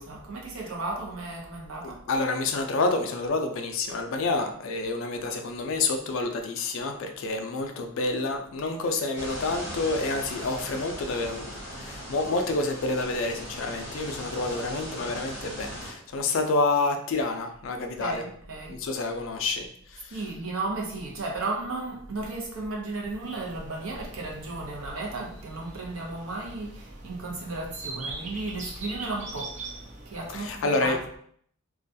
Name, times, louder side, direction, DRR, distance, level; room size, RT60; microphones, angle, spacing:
voice 1, 0.0-2.0 18.0-18.7 20.1-29.7 30.1-31.0, right 2 dB, 75° right, -1 dB, 0.7 m, -34 dB
voice 2, 2.1-18.2 18.7-19.7 19.9-20.2 30.3-31.0, left 3 dB, 60° left, 5 dB, 0.4 m, -28 dB
sound 1, 9.2-15.9, equal, 5° right, 1.3 m, -39 dB
sound 2, 23.2-30.6, right 2 dB, 35° right, 0.4 m, -42 dB
2.4 x 2.2 x 2.6 m, 0.63 s
head